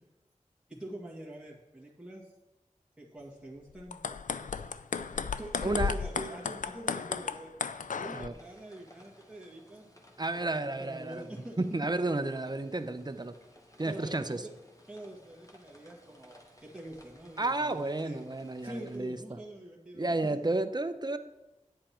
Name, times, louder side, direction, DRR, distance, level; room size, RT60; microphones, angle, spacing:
voice 1, 0.7-2.3 3.0-4.0 5.1-7.5 7.9-9.9 10.3-11.6 13.8-14.5 14.9-18.2 18.6-20.4, right 1 dB, 5° right, -5 dB, 1.8 m, -45 dB
sound 1, 3.8-8.3, left 6 dB, 80° left, 0.4 m, -34 dB
voice 2, 5.6-5.9 8.1-8.3 10.2-11.2 11.6-13.3 13.8-14.4 17.4-19.2 19.9-21.2, right 2 dB, 30° right, 9 dB, 0.7 m, -32 dB
sound 2, 8.3-19.0, left 1 dB, 25° left, 1.4 m, -59 dB
10.0 x 7.6 x 4.4 m, 1.0 s
wide cardioid pair, 45°, 13 cm